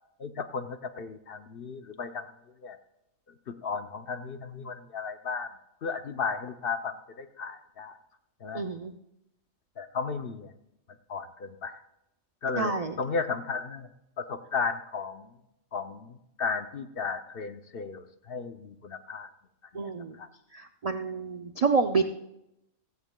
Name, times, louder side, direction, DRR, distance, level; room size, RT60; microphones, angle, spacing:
voice 1, 0.2-2.3 2.6-2.8 3.5-5.5 5.8-8.0 8.4-8.6 9.8-10.5 11.1-11.8 12.4-12.7 13.0-13.9 14.2-15.3 15.7-19.3 19.7-19.9 20.2-20.3, left 5 dB, 55° left, 8 dB, 0.8 m, -34 dB
voice 2, 8.5-8.9 12.6-13.0 19.7-20.2 20.5-22.0, right 4 dB, 65° right, 7 dB, 0.3 m, -28 dB
16.0 x 15.5 x 2.2 m, 0.85 s
omnidirectional pair, 1.4 m